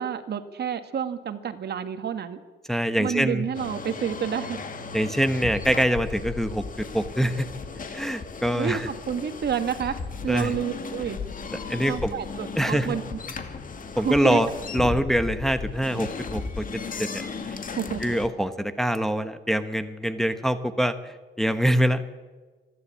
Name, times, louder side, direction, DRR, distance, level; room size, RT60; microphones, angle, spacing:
voice 1, 0.0-2.4 3.0-4.6 8.5-11.2 11.8-13.2 14.0-14.4 17.8-18.0, right 8 dB, 55° right, 9 dB, 1.7 m, -29 dB
voice 2, 2.7-3.4 4.9-7.5 7.9-8.9 10.3-10.5 11.7-12.1 12.6-13.0 14.0-14.5 14.7-17.6 18.0-22.0, equal, ahead, 9 dB, 1.2 m, -25 dB
sound 1, 3.5-18.3, left 5 dB, 45° left, 2.2 m, -36 dB
25.5 x 12.0 x 8.5 m, 1.3 s
cardioid pair, 90°, 20 cm